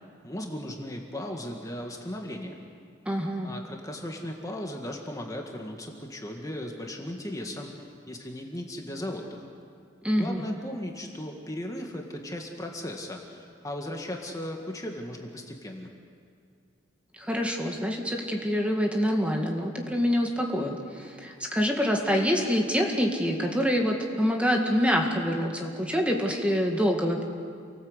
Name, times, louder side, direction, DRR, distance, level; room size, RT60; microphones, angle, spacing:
voice 1, 0.2-2.6 3.4-7.7 8.1-9.4 10.2-15.9, left 1 dB, 15° left, 1 dB, 1.8 m, -37 dB
voice 2, 3.1-3.5 10.0-10.4 17.2-27.2, equal, 5° right, 1 dB, 2.1 m, -26 dB
28.5 x 18.5 x 8.1 m, 2.3 s
head